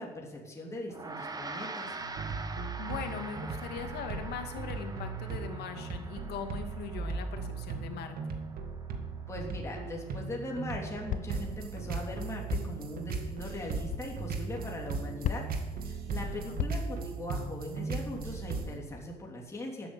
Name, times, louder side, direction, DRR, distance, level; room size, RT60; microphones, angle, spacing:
voice 1, 0.0-1.9 9.3-15.5 15.8-19.9, left 1 dB, 15° left, -1 dB, 3.1 m, -40 dB
Gong, 0.9-10.4, right 3 dB, 20° right, 1.4 m, -45 dB
sound 1, 2.0-18.8, right 4 dB, 60° right, 2.1 m, -37 dB
voice 2, 2.8-8.1 16.1-16.6, left 7 dB, 75° left, 5 dB, 2.3 m, -40 dB
sound 2, 9.8-10.2 11.1-11.5 12.5-12.8 13.9-14.1 15.2-15.7 16.6-17.0, left 9 dB, 50° left, 0.8 m, -36 dB
13.0 x 8.7 x 9.2 m, 1.2 s
cardioid pair, 110°, 17 cm